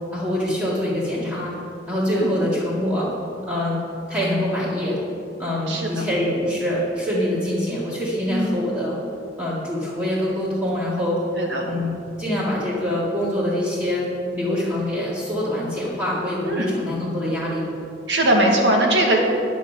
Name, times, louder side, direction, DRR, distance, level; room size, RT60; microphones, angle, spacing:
voice 1, 0.1-1.5 1.9-3.1 3.4-3.8 4.1-5.0 5.4-9.0 9.4-11.2 11.6-14.1 14.3-17.6, left 1 dB, 15° right, -11 dB, 2.1 m, -24 dB
voice 2, 5.7-6.0 8.3-8.5 11.4-11.7 16.5-16.7 18.1-19.2, right 1 dB, 70° right, 0 dB, 1.8 m, -20 dB
10.5 x 6.3 x 7.4 m, 2.5 s
head